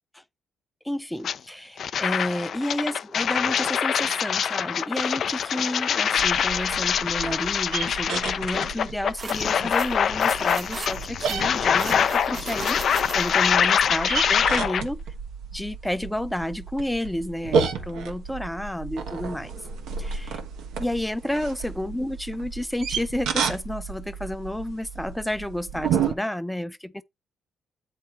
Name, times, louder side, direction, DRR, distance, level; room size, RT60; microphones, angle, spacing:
voice 1, 0.8-15.0 15.5-19.5 20.0-20.4 20.8-27.0, left 1 dB, 5° left, 0.6 m, -31 dB
sound 1, 1.2-1.4 1.8-14.8, left 8 dB, 60° left, 0.4 m, -24 dB
sound 2, 6.2-26.1, right 6 dB, 85° right, 1.1 m, -32 dB
sound 3, 9.2-13.5, right 4 dB, 45° right, 1.0 m, -38 dB
8.2 x 3.3 x 4.3 m
cardioid pair, 90°, 0 cm